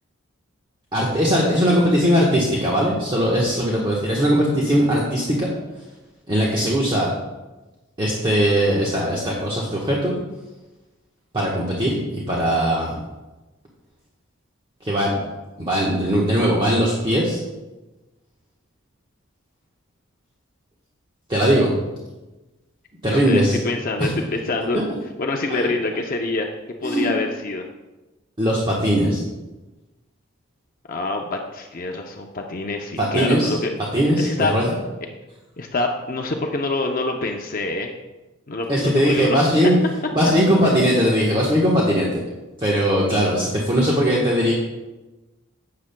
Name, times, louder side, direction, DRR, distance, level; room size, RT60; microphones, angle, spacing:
voice 1, 0.9-5.5 6.3-7.1 8.0-10.1 11.3-13.0 14.8-15.2 15.6-17.4 21.3-21.7 23.0-23.6 24.0-24.1 24.7-24.8 25.5-25.7 26.8-27.1 28.4-29.2 33.0-33.6 33.9-34.7 38.7-39.7 40.1-42.2 42.6-44.5, equal, 25° right, -5 dB, 1.2 m, -20 dB
voice 2, 23.1-24.8 25.2-26.5 26.8-27.6 30.9-33.7 34.2-34.5 35.6-37.9 38.5-39.5, left 2 dB, 45° left, 2 dB, 0.6 m, -26 dB
12.0 x 8.5 x 2.2 m, 1.1 s
head